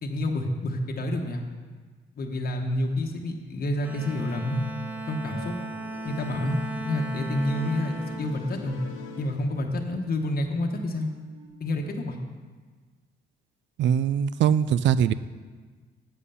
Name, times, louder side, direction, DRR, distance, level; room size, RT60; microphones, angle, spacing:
voice 1, 0.0-1.4 2.2-4.6 5.1-5.5 6.0-8.8 9.2-11.1 11.6-12.2, left 1 dB, 50° left, 2 dB, 1.1 m, -28 dB
Bowed string instrument, 3.8-9.3, right 2 dB, 10° right, 0.8 m, -37 dB
sound 1, 4.0-11.5, right 4 dB, 85° right, 1.5 m, -52 dB
sound 2, 5.3-10.0, left 6 dB, 80° left, 1.0 m, -44 dB
voice 2, 13.8-15.1, right 9 dB, 65° right, 16 dB, 0.4 m, -22 dB
8.3 x 7.6 x 5.6 m, 1.5 s
cardioid pair, 90°, 20 cm